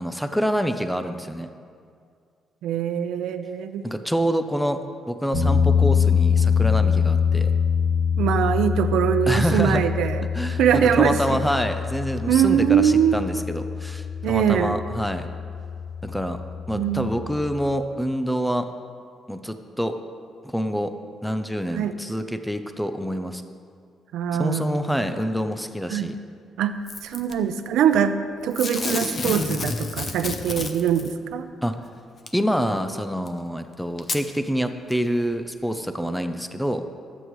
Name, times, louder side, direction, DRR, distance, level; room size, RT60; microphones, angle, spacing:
voice 1, 0.0-1.5 3.8-4.8 5.1-7.5 9.3-9.8 10.3-15.3 16.0-16.4 16.7-18.7 19.3-20.0 20.4-20.9 21.2-23.4 24.4-26.2 31.6-31.8 32.3-36.8, equal, ahead, 8 dB, 0.5 m, -26 dB
voice 2, 2.6-3.8 8.2-10.3 10.6-11.4 12.3-13.2 14.2-14.8 16.7-17.3 21.7-21.9 24.1-25.0 25.9-26.1 26.6-31.5, right 8 dB, 80° right, 9 dB, 0.7 m, -22 dB
sound 1, 5.3-17.7, left 6 dB, 60° left, 3.2 m, -24 dB
Packing tape duct tape / Tearing, 26.9-27.3 28.5-31.1 32.3-32.4 33.3-33.4 34.0-34.2 34.9-35.0, left 4 dB, 35° left, 0.7 m, -29 dB
24.0 x 8.2 x 3.1 m, 2.2 s
cardioid pair, 150°, 0 cm